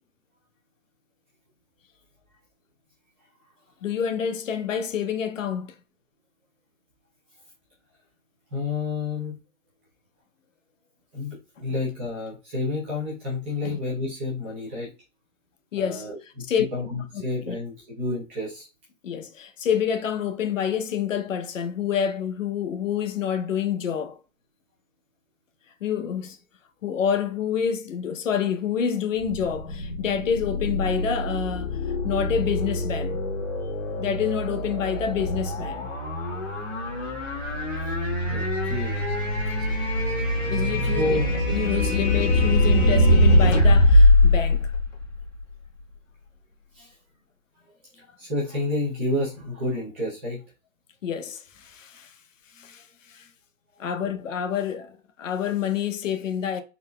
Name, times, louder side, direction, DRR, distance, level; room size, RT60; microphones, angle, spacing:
voice 1, 3.8-5.7 13.6-13.8 15.7-16.1 16.5-16.7 17.1-17.6 19.0-24.2 25.8-26.4 26.8-31.7 32.0-33.2 34.0-35.9 40.5-41.2 41.5-44.7 51.0-52.1 52.6-52.8 53.1-53.3 53.8-56.6, left 8 dB, 65° left, 0.8 m, -28 dB
voice 2, 8.5-9.4 11.1-14.9 15.7-16.4 16.7-18.7 33.6-33.7 38.3-39.0 40.9-41.3 46.7-46.9 47.9-50.4, left 2 dB, 10° right, 0.5 m, -30 dB
sound 1, 29.2-45.4, left 1 dB, 50° left, 1.9 m, -22 dB
3.9 x 3.8 x 2.2 m
hypercardioid pair, 160°, 42 cm